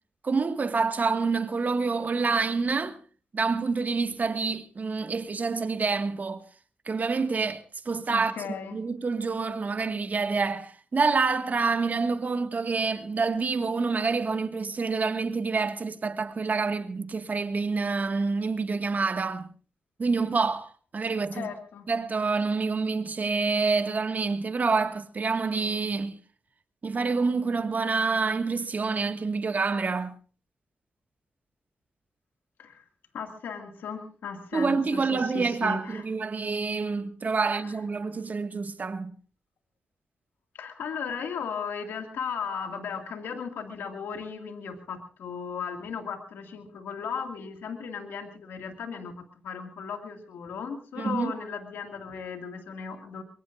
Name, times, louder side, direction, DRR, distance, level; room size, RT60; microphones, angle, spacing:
voice 1, 0.2-2.9 3.3-6.4 6.8-8.3 8.7-19.5 20.0-20.7 20.9-21.5 21.9-26.2 26.8-30.1 34.5-39.1 51.0-51.3, right 4 dB, 50° right, 1.8 m, -27 dB
voice 2, 8.1-8.8 21.3-21.9 32.6-32.8 33.1-36.0 37.4-37.7 40.5-53.2, left 6 dB, 80° left, 2.2 m, -36 dB
23.5 x 23.0 x 2.6 m
supercardioid pair, 45°, 3 cm